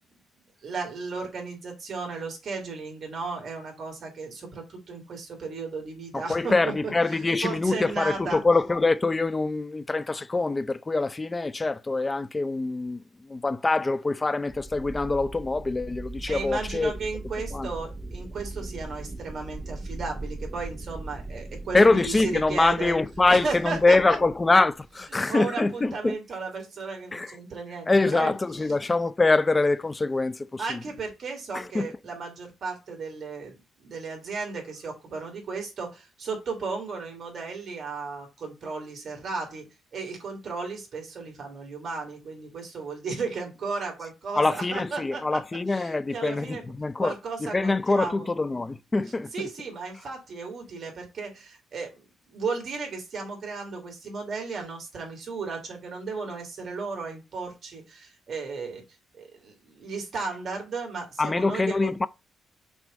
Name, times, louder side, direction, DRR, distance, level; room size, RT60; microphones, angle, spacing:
voice 1, 0.6-8.4 16.3-23.0 23.3-24.0 25.3-28.4 30.6-39.6 39.9-45.4 45.7-46.6 47.0-48.3 49.3-58.8 59.2-62.0, right 4 dB, 50° right, 3.0 m, -35 dB
voice 2, 6.1-16.9 17.5-17.7 21.7-26.2 27.1-27.4 27.9-30.8 31.5-31.9 44.3-49.5 61.2-62.1, left 3 dB, 20° left, 0.5 m, -24 dB
sound 1, 14.5-25.1, right 2 dB, 20° right, 1.0 m, -39 dB
6.1 x 3.6 x 5.2 m
cardioid pair, 90°, 0 cm